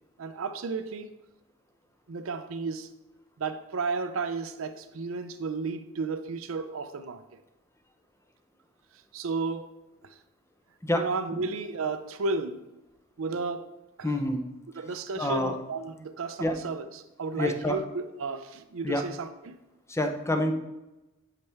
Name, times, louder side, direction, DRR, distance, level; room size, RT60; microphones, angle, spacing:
voice 1, 0.2-1.1 2.1-2.9 3.4-7.4 9.1-9.7 10.1-10.2 10.9-12.6 13.2-13.7 14.0-14.1 14.8-19.5, right 4 dB, 75° right, 0.5 m, -33 dB
voice 2, 14.0-14.4 15.2-15.5 16.4-16.5 17.4-17.8 18.8-19.0 19.9-20.5, left 1 dB, 15° left, 0.7 m, -27 dB
8.4 x 5.8 x 3.4 m
head